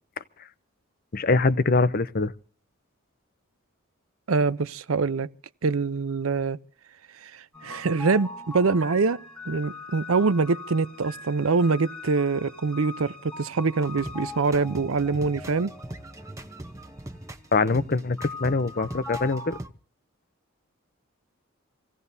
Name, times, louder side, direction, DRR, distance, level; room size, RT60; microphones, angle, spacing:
voice 1, 1.1-2.3 17.5-19.6, left 3 dB, 45° left, 0.7 m, -23 dB
voice 2, 4.3-5.3 5.6-6.6 7.2-9.2 9.5-15.7, right 4 dB, 75° right, 0.6 m, -24 dB
sound 1, 7.5-19.6, left 3 dB, 5° left, 1.2 m, -42 dB
sound 2, 13.8-19.7, right 1 dB, 15° right, 0.9 m, -41 dB
27.0 x 16.5 x 2.7 m
head